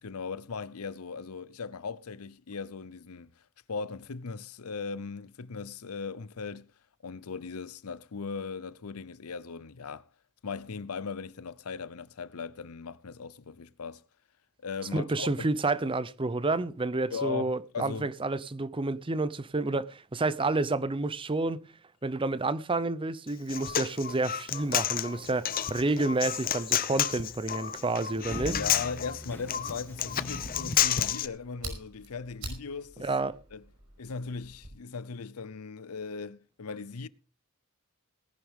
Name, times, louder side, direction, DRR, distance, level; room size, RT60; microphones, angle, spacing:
voice 1, 0.0-3.4 3.7-6.7 7.0-10.0 10.4-14.0 14.6-15.5 17.1-18.1 28.4-33.1 33.5-33.6 34.0-37.1, left 5 dB, 75° left, 0.7 m, -38 dB
voice 2, 14.9-21.6 22.0-28.6 33.0-33.4, right 2 dB, 25° right, 0.6 m, -29 dB
Human voice, 23.3-31.3, left 10 dB, 40° left, 0.7 m, -30 dB
sound 1, 24.5-30.8, equal, 10° left, 1.7 m, -44 dB
Fire, 30.1-34.7, right 2 dB, 70° right, 5.3 m, -45 dB
18.5 x 11.0 x 3.6 m
head